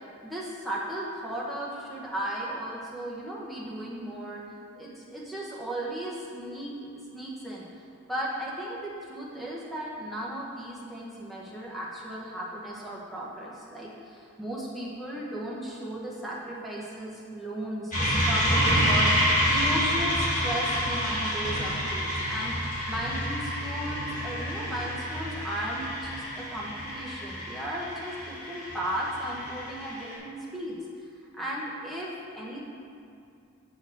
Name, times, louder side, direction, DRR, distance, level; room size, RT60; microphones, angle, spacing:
voice 1, 0.2-4.4 4.7-6.7 7.1-7.7 8.1-22.5 22.9-30.8 31.3-32.6, right 1 dB, ahead, -6 dB, 1.1 m, -35 dB
sound 1, 17.9-30.1, equal, 35° left, 1.6 m, -28 dB
6.8 x 4.6 x 6.4 m, 2.5 s
head